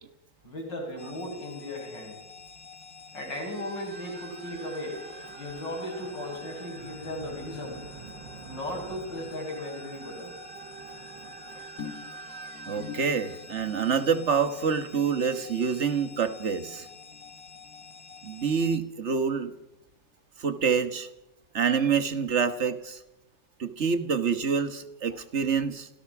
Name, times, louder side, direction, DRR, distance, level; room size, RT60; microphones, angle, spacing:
voice 1, 0.4-2.2 3.1-5.0 5.4-7.8 8.4-10.3, left 1 dB, 80° left, -1 dB, 7.5 m, -36 dB
sound 1, 1.0-18.8, left 5 dB, 35° left, 1.8 m, -48 dB
sound 2, 3.5-14.7, right 6 dB, 80° right, 1.8 m, -46 dB
sound 3, 11.8-18.4 18.6-19.1 19.4-19.5, left 6 dB, 55° left, 2.3 m, -47 dB
voice 2, 12.7-16.9 18.2-19.5 20.4-21.1 21.5-23.0 23.6-25.9, right 6 dB, 40° right, 10 dB, 1.6 m, -27 dB
25.5 x 17.0 x 6.1 m, 0.89 s
omnidirectional pair, 1.9 m